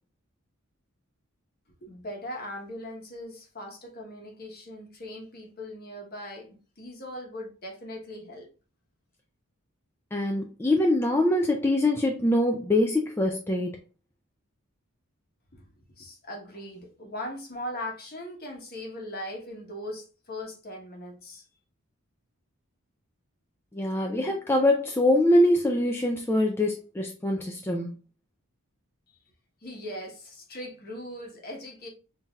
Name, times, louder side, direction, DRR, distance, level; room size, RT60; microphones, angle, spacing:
voice 1, 1.8-8.5 15.5-21.4 29.1-29.2 29.6-31.9, left 1 dB, 45° left, 1.1 m, -39 dB
voice 2, 10.1-13.8 23.7-27.9, left 1 dB, 10° left, 0.4 m, -24 dB
5.5 x 2.8 x 2.3 m
head